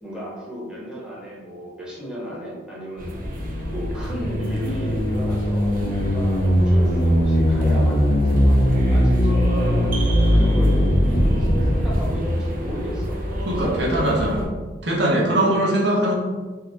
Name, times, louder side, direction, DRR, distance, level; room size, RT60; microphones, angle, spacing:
voice 1, 0.0-3.1 3.7-13.2 13.5-14.3 15.2-15.6, equal, 5° right, -6 dB, 1.0 m, -34 dB
sound 1, 3.0-14.5, equal, 50° right, 0.7 m, -29 dB
sound 2, 3.3-12.1, equal, 55° left, 0.5 m, -20 dB
voice 2, 13.5-14.4 14.8-16.1, right 1 dB, 75° right, -2 dB, 1.0 m, -21 dB
3.7 x 2.9 x 3.4 m, 1.4 s
head